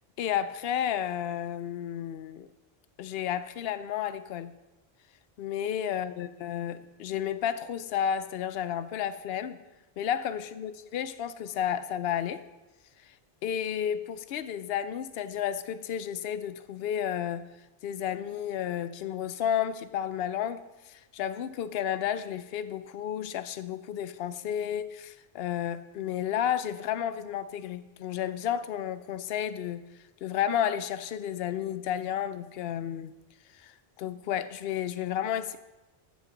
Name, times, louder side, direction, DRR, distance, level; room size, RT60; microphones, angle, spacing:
voice 1, 0.2-2.5 3.0-4.5 5.4-9.6 10.0-12.4 13.4-17.4 17.8-20.6 20.9-29.8 30.2-33.1 33.6-33.7 34.0-35.6, left 9 dB, 75° left, 13 dB, 0.8 m, -32 dB
14.5 x 7.3 x 3.9 m, 1.1 s
omnidirectional pair, 1.0 m